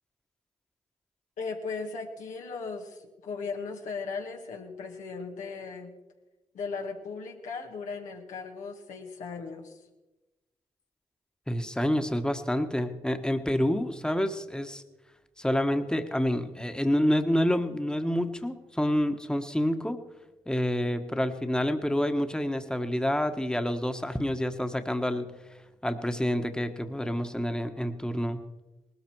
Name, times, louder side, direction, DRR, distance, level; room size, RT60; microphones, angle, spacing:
voice 1, 1.4-5.9 6.5-9.8, left 4 dB, 85° left, 1 dB, 2.0 m, -37 dB
voice 2, 11.5-14.8 15.4-20.0 20.5-25.3 25.8-28.4, equal, 5° left, 7 dB, 1.4 m, -28 dB
19.5 x 13.5 x 4.7 m, 1.1 s
supercardioid pair, 40°, 13 cm